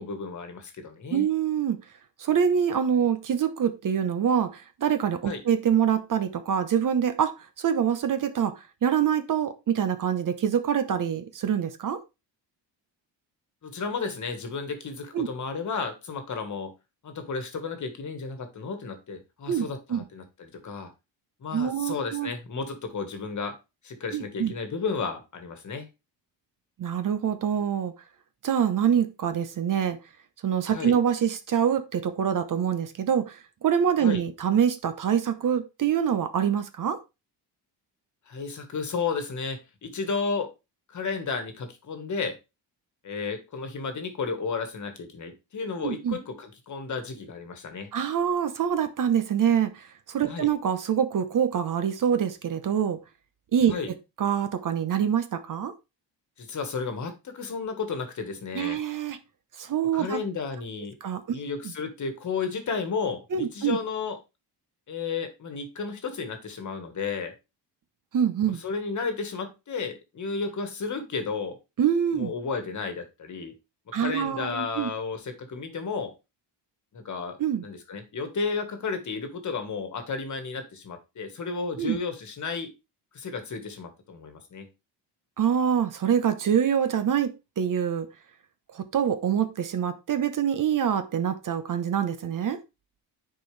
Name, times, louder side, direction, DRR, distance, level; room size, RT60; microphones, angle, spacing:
voice 1, 0.0-1.3 5.3-5.4 13.6-16.7 17.0-20.9 21.4-23.6 23.8-25.9 30.7-30.9 34.0-34.2 38.3-40.5 40.9-42.4 43.0-47.9 50.3-50.5 53.7-53.9 56.4-58.8 59.9-61.0 61.3-64.2 64.9-67.3 68.6-71.6 72.1-73.5 73.9-76.1 76.9-82.7 83.1-84.7, left 5 dB, 40° left, 1.5 m, -33 dB
voice 2, 1.1-1.8 2.2-12.0 15.1-15.3 19.5-20.0 21.5-22.3 24.1-24.5 26.8-27.9 28.4-30.0 30.4-37.0 45.8-46.2 47.9-53.0 53.5-53.7 54.2-55.7 58.5-59.2 59.6-60.2 61.0-61.2 63.3-63.8 68.1-68.6 71.8-72.3 73.9-74.9 77.4-77.6 81.8-82.0 85.4-88.1 88.7-92.6, right 8 dB, 50° right, 0.9 m, -25 dB
10.0 x 4.6 x 3.3 m
cardioid pair, 155°, 43 cm